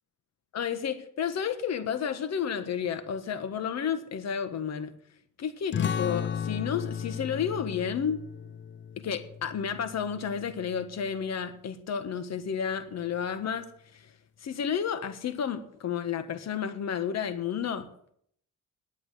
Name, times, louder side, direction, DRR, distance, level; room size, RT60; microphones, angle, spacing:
voice 1, 0.5-4.9 5.4-8.2 9.0-13.7 13.9-14.0 14.4-17.9, left 7 dB, 60° left, 11 dB, 1.5 m, -31 dB
sound 1, 5.7-10.9, left 8 dB, 40° left, 0.5 m, -35 dB
10.5 x 8.9 x 7.7 m, 0.67 s
cardioid pair, 90°, 30 cm